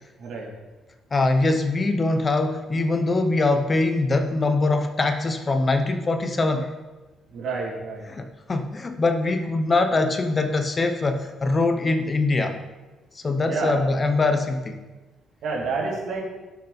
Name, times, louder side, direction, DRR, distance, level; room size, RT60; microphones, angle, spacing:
voice 1, 1.1-6.7 8.1-12.6 13.1-14.8, left 2 dB, 20° left, 7 dB, 0.6 m, -23 dB
voice 2, 7.3-8.0 13.5-13.8 15.4-16.2, right 4 dB, 60° right, -1 dB, 2.8 m, -28 dB
17.0 x 6.6 x 4.3 m, 1.2 s
cardioid pair, 180°, 0 cm